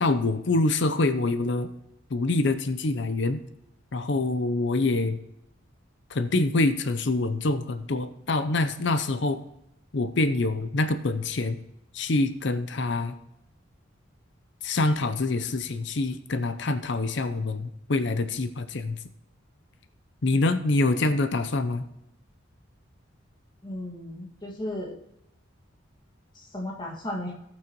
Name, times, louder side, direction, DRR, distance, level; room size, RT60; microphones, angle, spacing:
voice 1, 0.0-1.7 2.1-3.4 3.9-5.2 6.1-9.4 9.9-11.6 11.9-13.2 14.6-19.0 20.2-21.9, left 2 dB, 60° left, 10 dB, 0.6 m, -25 dB
voice 2, 23.6-25.0 26.3-27.3, left 1 dB, 20° left, -3 dB, 1.9 m, -35 dB
18.5 x 6.1 x 3.0 m, 0.82 s
head